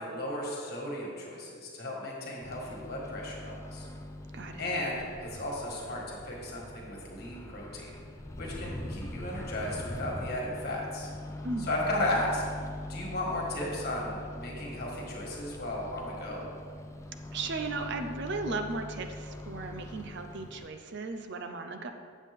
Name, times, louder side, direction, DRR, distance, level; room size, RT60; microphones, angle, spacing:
voice 1, 0.0-3.9 4.6-7.9 8.4-11.1 11.6-12.4 12.9-16.4, left 1 dB, 45° left, -2 dB, 1.8 m, -35 dB
Microwave oven, 2.4-20.7, left 1 dB, 15° left, 0.4 m, -42 dB
voice 2, 11.4-11.8 17.3-21.9, right 3 dB, 55° right, 6 dB, 0.5 m, -36 dB
8.3 x 7.3 x 3.6 m, 2.1 s
head